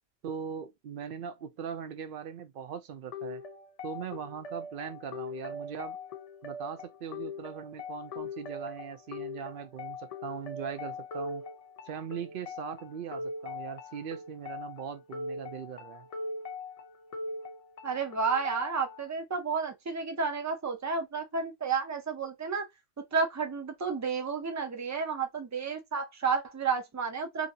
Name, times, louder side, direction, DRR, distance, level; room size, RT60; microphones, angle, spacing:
voice 1, 0.2-3.4 3.8-6.0 6.4-11.4 11.9-16.1, right 7 dB, 60° right, 0.6 m, -40 dB
sound 1, 3.1-19.1, left 3 dB, 50° left, 0.4 m, -41 dB
voice 2, 17.8-22.7 23.1-27.5, right 5 dB, 30° right, 0.3 m, -31 dB
2.7 x 2.6 x 2.7 m
omnidirectional pair, 1.2 m